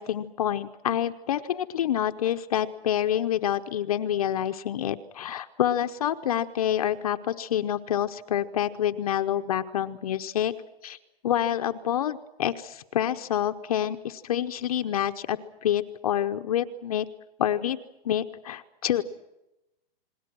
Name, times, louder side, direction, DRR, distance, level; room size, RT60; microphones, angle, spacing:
voice 1, 0.0-10.5 10.8-11.0 11.2-17.1 17.4-17.8 18.0-19.0, left 10 dB, 35° left, 8 dB, 0.9 m, -27 dB
29.0 x 21.0 x 6.1 m, 0.92 s
hypercardioid pair, 170°, 31 cm